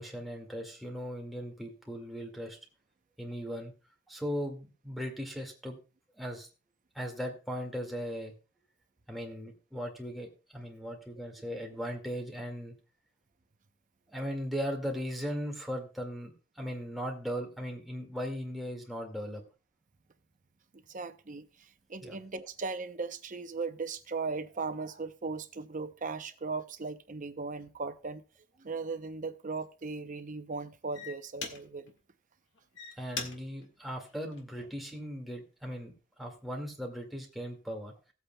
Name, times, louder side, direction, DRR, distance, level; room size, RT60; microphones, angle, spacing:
voice 1, 0.0-2.6 3.2-3.7 4.1-5.8 6.2-6.5 7.0-8.3 9.1-12.8 14.1-19.4 22.0-22.2 33.0-35.9 36.2-37.9, equal, ahead, 2.0 m, -38 dB
voice 2, 20.9-28.2 28.6-31.9, right 4 dB, 40° right, 0.7 m, -38 dB
sound 1, 28.7-28.9 29.5-29.8 30.5-30.6 30.9-32.0 32.5-34.9 35.5-35.8, left 5 dB, 60° left, 1.8 m, -43 dB
17.0 x 8.3 x 2.3 m
head